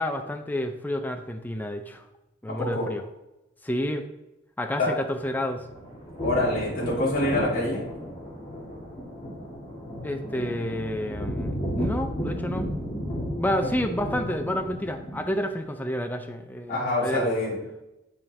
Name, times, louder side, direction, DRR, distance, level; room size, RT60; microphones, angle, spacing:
voice 1, 0.0-2.0 2.4-3.0 3.6-4.1 4.6-5.6 10.0-12.7 13.4-17.4, left 1 dB, 10° left, 6 dB, 0.4 m, -30 dB
voice 2, 2.5-2.9 4.8-4.9 6.2-7.9 16.7-17.6, left 1 dB, 45° left, -5 dB, 2.1 m, -26 dB
sound 1, 5.2-15.6, equal, 30° left, 1.7 m, -33 dB
9.1 x 4.3 x 3.2 m, 0.96 s
head